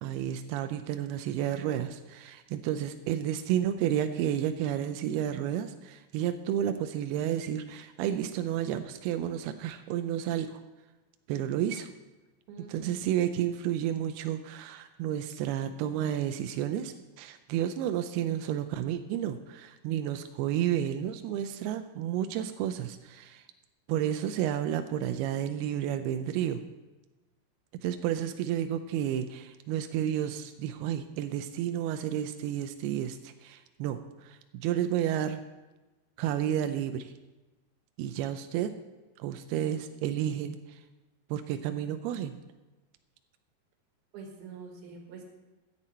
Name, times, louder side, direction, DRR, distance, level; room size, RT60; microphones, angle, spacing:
voice 1, 0.0-10.6 11.3-11.9 12.7-23.4 23.9-26.6 27.8-35.4 36.2-37.1 38.0-38.7 39.2-40.8 41.3-42.4, right 10 dB, 90° right, 9 dB, 2.2 m, -31 dB
voice 2, 12.5-13.0 44.1-45.2, right 4 dB, 65° right, 2 dB, 3.2 m, -45 dB
14.0 x 9.2 x 4.3 m, 1.1 s
omnidirectional pair, 5.1 m